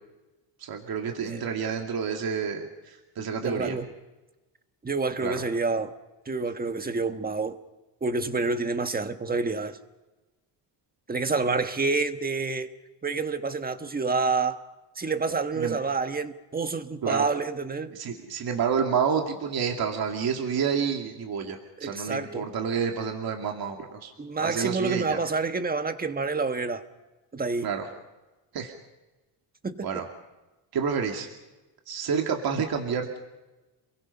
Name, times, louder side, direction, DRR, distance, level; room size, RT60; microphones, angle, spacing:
voice 1, 0.6-3.8 5.2-5.4 15.6-15.8 17.0-17.3 17.9-24.1 24.4-25.2 27.6-27.8 28.5-28.7 29.8-30.0 30.7-31.3 31.9-33.2, right 6 dB, 50° right, 2 dB, 2.5 m, -29 dB
voice 2, 3.4-3.9 4.8-5.9 6.3-7.6 8.0-9.8 11.1-12.7 13.0-14.6 15.0-17.9 21.8-22.5 24.2-26.8 27.3-27.7 29.6-30.0, right 4 dB, 20° right, 8 dB, 1.4 m, -28 dB
28.5 x 22.5 x 5.6 m, 1.1 s
cardioid pair, 135°, 47 cm